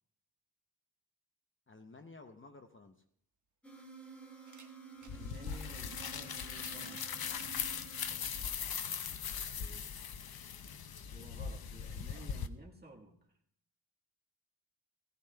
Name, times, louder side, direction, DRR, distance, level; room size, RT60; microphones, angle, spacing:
voice 1, 1.7-3.0 9.5-9.8, left 3 dB, 30° left, 6 dB, 0.7 m, -54 dB
sound 1, 3.0-3.1 4.4-5.2 6.2-7.5 8.3-8.4 9.7-9.8, right 4 dB, 50° right, 1.3 m, -60 dB
sound 2, 3.6-8.9, right 5 dB, 5° left, 2.1 m, -53 dB
sound 3, 5.1-12.5, left 7 dB, 70° left, 0.7 m, -40 dB
voice 2, 5.1-7.2 9.7-10.0 11.1-13.3, right 2 dB, 25° right, 0 dB, 1.7 m, -54 dB
18.5 x 15.5 x 2.3 m, 0.66 s
wide cardioid pair, 120°, 38 cm